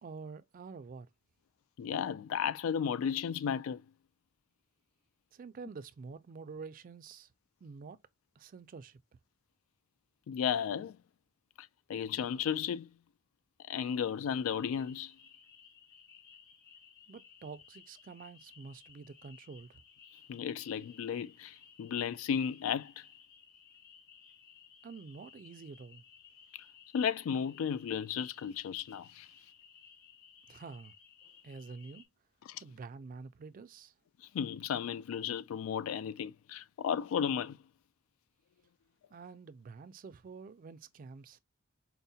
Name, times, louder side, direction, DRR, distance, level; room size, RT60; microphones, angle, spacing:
voice 1, 0.0-1.1 5.3-7.3 7.6-8.0 8.4-9.0 17.1-19.8 24.8-26.0 30.5-30.9 31.4-32.1 32.6-33.9 39.1-41.4, right 4 dB, 45° right, 0.3 m, -48 dB
voice 2, 1.8-3.8 10.3-11.0 11.6-12.9 13.7-15.1 20.3-23.0 26.5-26.6 26.9-29.3 32.5-32.6 34.3-37.6, left 8 dB, 90° left, 0.3 m, -34 dB
sound 1, 14.6-32.1, left 7 dB, 50° left, 1.0 m, -59 dB
4.5 x 2.1 x 2.7 m
head